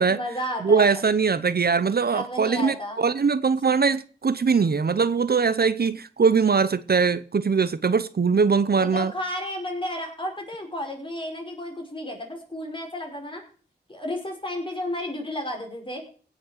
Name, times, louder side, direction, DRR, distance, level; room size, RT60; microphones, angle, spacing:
voice 1, 0.1-1.0 2.1-3.1 8.8-13.4 13.9-16.0, left 1 dB, 30° left, 5.2 m, -32 dB
voice 2, 0.6-9.1, right 5 dB, 60° right, 0.7 m, -21 dB
16.5 x 6.1 x 6.5 m
wide cardioid pair, 70°, 18 cm